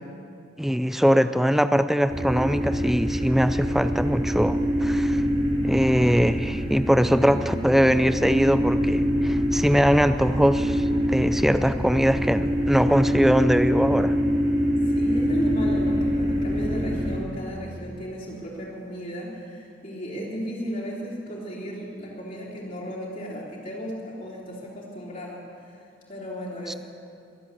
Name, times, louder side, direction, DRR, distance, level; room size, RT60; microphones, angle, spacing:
voice 1, 0.6-5.2 5.6-14.2 26.7-26.8, equal, ahead, 11 dB, 0.4 m, -22 dB
sound 1, 2.1-17.2, equal, 30° right, 2.6 m, -25 dB
voice 2, 14.9-26.8, equal, 45° left, -6 dB, 3.3 m, -34 dB
22.0 x 7.8 x 8.4 m, 2.4 s
head